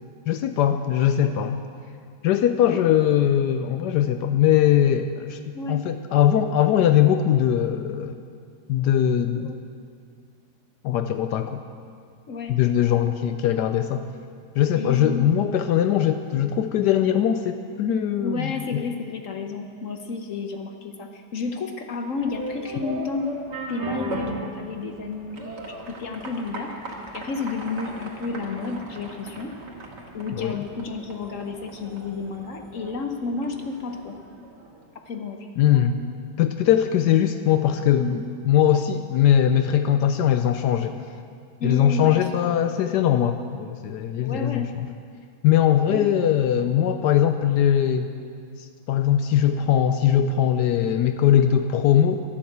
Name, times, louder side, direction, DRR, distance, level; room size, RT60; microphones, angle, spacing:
voice 1, 0.3-1.6 2.2-5.4 5.7-8.1 8.7-9.5 10.8-11.6 12.5-14.1 14.6-18.8 30.3-30.6 35.6-35.9 36.4-41.0 41.6-44.6 45.4-48.1 48.6-52.2, left 10 dB, 80° left, 8 dB, 1.2 m, -21 dB
voice 2, 12.3-12.6 14.7-15.5 18.2-23.3 23.7-26.7 27.1-29.5 30.1-34.2 34.9-36.0 41.6-42.3 44.2-44.7 45.9-46.0, left 4 dB, 55° left, 5 dB, 1.1 m, -31 dB
sound 1, 22.1-34.9, right 3 dB, 85° right, 2.3 m, -37 dB
11.5 x 11.5 x 8.0 m, 2.2 s
omnidirectional pair, 1.8 m